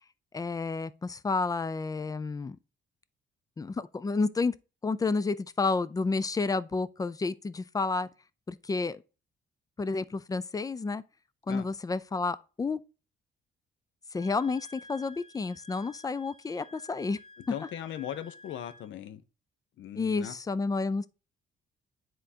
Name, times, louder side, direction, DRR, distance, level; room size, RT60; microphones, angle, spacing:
voice 1, 0.3-2.6 3.6-4.5 4.8-8.1 8.5-9.0 9.8-11.0 11.5-12.8 14.1-17.2 20.0-21.1, left 4 dB, 20° left, 0.3 m, -30 dB
Wind instrument woodwind instrument, 14.1-18.9, left 2 dB, 45° left, 2.7 m, -53 dB
voice 2, 17.5-19.2 19.8-20.3, left 10 dB, 75° left, 0.7 m, -38 dB
9.7 x 3.8 x 2.7 m
cardioid pair, 90°, 20 cm